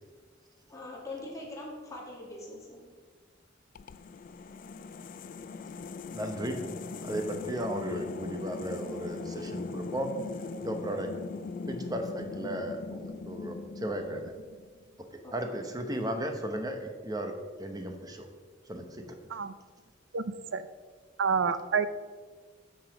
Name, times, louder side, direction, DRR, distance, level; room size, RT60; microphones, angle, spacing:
voice 1, 0.7-2.8 15.2-15.3, left 2 dB, 15° left, -4 dB, 2.0 m, -42 dB
sound 1, 3.8-14.8, left 4 dB, 45° left, 0.3 m, -40 dB
voice 2, 6.1-6.6 7.0-10.1 10.6-11.1 11.7-14.3 15.3-17.3 17.6-18.3 18.7-19.0, right 1 dB, 20° right, 5 dB, 0.9 m, -35 dB
voice 3, 21.2-21.9, right 6 dB, 85° right, 13 dB, 0.5 m, -27 dB
8.9 x 5.5 x 5.1 m, 1.5 s
head